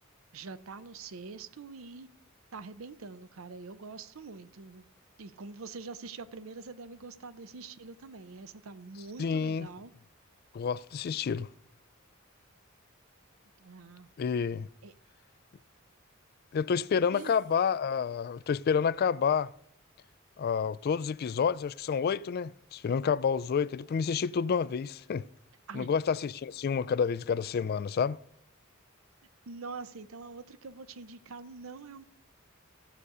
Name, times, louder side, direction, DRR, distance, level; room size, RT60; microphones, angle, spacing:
voice 1, 0.3-2.1 2.5-4.9 5.2-9.9 13.6-14.1 14.8-14.9 17.1-17.4 25.7-25.9 29.5-32.0, right 4 dB, 80° right, 0.6 m, -44 dB
voice 2, 9.2-9.7 10.5-11.5 14.2-14.7 16.5-19.5 20.4-25.2 25.7-28.2, left 6 dB, 50° left, 0.3 m, -29 dB
sound 1, 17.1-18.2, right 2 dB, 40° right, 2.5 m, -61 dB
15.0 x 6.7 x 4.9 m
head